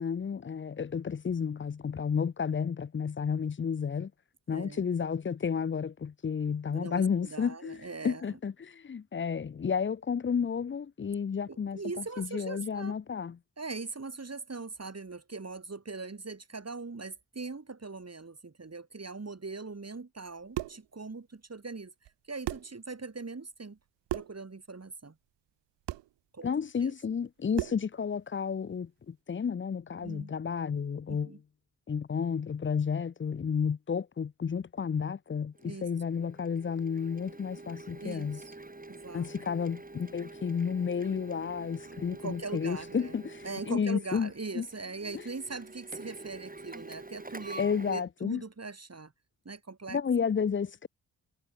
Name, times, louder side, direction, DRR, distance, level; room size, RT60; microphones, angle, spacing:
voice 1, 0.0-4.1 4.5-13.4 26.4-31.3 31.9-38.4 39.1-44.7 47.6-48.4 49.9-50.9, left 6 dB, 30° left, 0.6 m, -32 dB
voice 2, 4.5-4.9 6.7-8.4 11.5-12.9 13.6-21.9 22.3-23.8 24.1-25.2 26.3-26.5 26.8-26.9 30.0-30.4 31.1-31.4 35.6-35.9 38.0-38.6 38.9-39.3 41.8-43.1 43.4-49.1 49.4-50.0, right 3 dB, 35° right, 4.4 m, -41 dB
sound 1, 20.3-20.9 22.0-22.1 22.4-22.8 24.1-24.4 25.9-26.1 27.5-27.9, right 15 dB, 85° right, 0.8 m, -36 dB
Printer, 35.6-48.0, right 2 dB, 20° right, 3.2 m, -47 dB
supercardioid pair, 45°, 41 cm